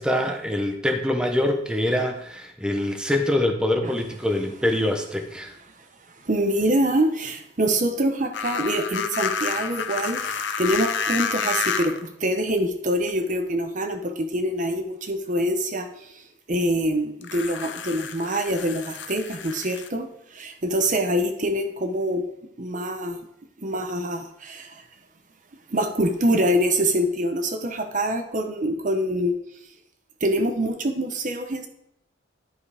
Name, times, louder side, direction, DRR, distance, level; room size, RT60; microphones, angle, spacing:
voice 1, 0.0-5.5, left 1 dB, 5° right, 3 dB, 0.9 m, -24 dB
voice 2, 6.3-15.9 16.5-20.1 20.3-22.3 22.6-23.2 23.6-24.7 25.7-29.4 30.2-31.7, right 1 dB, 40° right, 6 dB, 0.8 m, -25 dB
sound 1, 8.3-12.1 13.1-13.2 17.2-19.9, left 6 dB, 60° left, 0.7 m, -29 dB
10.5 x 5.3 x 4.9 m, 0.77 s
head